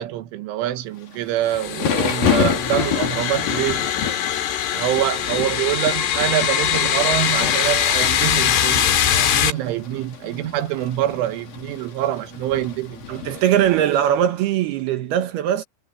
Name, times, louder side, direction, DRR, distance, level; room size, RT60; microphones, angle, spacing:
voice 1, 0.0-3.9 4.7-13.3, right 13 dB, 85° right, 3.8 m, -25 dB
Thunder / Rain, 1.1-14.1, left 7 dB, 50° left, 5.0 m, -29 dB
sound 1, 1.5-9.5, left 9 dB, 85° left, 5.1 m, -22 dB
voice 2, 13.1-15.6, right 11 dB, 70° right, 2.6 m, -20 dB
omnidirectional pair, 5.4 m